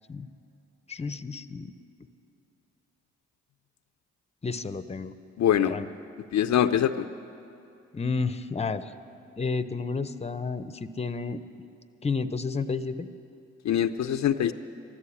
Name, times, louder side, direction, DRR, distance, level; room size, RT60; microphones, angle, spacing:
voice 1, 0.9-1.7 4.4-5.1 5.6-5.9 7.9-8.9 9.4-11.4 12.0-13.1, left 4 dB, 20° left, 13 dB, 0.7 m, -31 dB
voice 2, 5.4-5.7 6.3-7.1 13.6-14.5, left 10 dB, 65° left, 9 dB, 0.6 m, -23 dB
14.0 x 11.5 x 8.4 m, 2.6 s
supercardioid pair, 50°, 31 cm